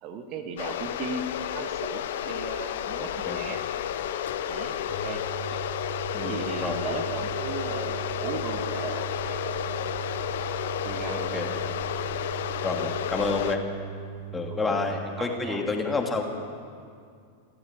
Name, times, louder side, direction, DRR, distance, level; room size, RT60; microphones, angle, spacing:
voice 1, 0.0-3.6 4.5-5.2 6.2-9.9 10.8-11.6 13.2-13.3 14.5-15.6 15.9-16.0, right 4 dB, 40° right, 6 dB, 1.8 m, -37 dB
sound 1, 0.6-13.6, left 10 dB, 55° left, 0.9 m, -31 dB
voice 2, 3.0-3.4 6.1-6.4 6.6-6.8 11.1-11.5 12.6-13.6 14.3-16.2, left 4 dB, 15° left, 2 dB, 2.7 m, -29 dB
sound 2, 4.9-14.9, right 12 dB, 15° right, 7.3 m, -39 dB
29.5 x 13.5 x 7.6 m, 2.3 s
figure-of-eight pair, 90°, 0 cm